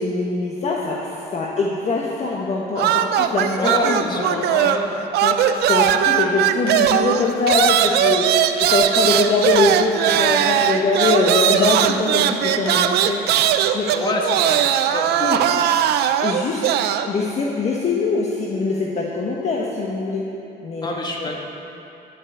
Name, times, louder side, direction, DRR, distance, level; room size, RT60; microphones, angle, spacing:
voice 1, 0.0-4.8 5.2-5.4 5.7-13.9 15.2-15.5 16.2-16.6 17.0-20.2 20.6-20.9 21.2-21.4, left 3 dB, 40° left, -2 dB, 1.3 m, -23 dB
sound 1, 2.8-4.9 5.1-17.1, right 10 dB, 75° right, 0.6 m, -19 dB
voice 2, 3.6-5.0 13.9-14.6 14.9-15.2 20.8-21.4, left 1 dB, 25° left, -1 dB, 1.9 m, -25 dB
11.0 x 8.0 x 7.9 m, 3.0 s
cardioid pair, 110°, 17 cm